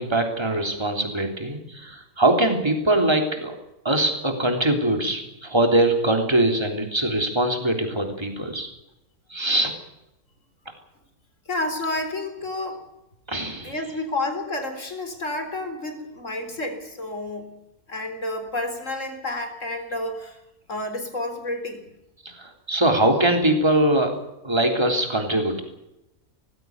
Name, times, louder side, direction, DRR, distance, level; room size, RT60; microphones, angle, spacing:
voice 1, 0.0-3.6 3.8-8.7 9.3-9.7 13.3-13.7 22.4-24.1 24.4-25.6, right 1 dB, 15° right, 4 dB, 3.4 m, -22 dB
voice 2, 11.5-12.8 13.4-17.6 17.9-20.4 20.7-21.9, left 2 dB, 55° left, 6 dB, 4.2 m, -30 dB
19.5 x 16.0 x 9.5 m, 0.90 s
omnidirectional pair, 1.5 m